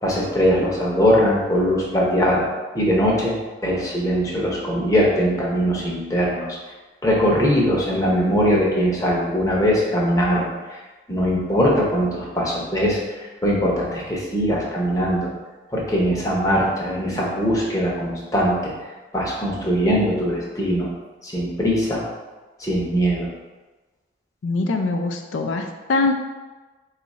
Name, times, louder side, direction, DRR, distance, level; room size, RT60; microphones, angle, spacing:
voice 1, 0.0-2.5 2.7-3.4 3.6-6.5 7.0-10.5 11.1-13.0 13.4-15.3 15.7-18.7 19.1-20.9 21.2-22.0 22.6-23.3, equal, 20° left, -4 dB, 0.7 m, -21 dB
voice 2, 24.4-26.1, left 3 dB, 90° left, 4 dB, 0.4 m, -23 dB
3.8 x 2.4 x 4.1 m, 1.2 s
head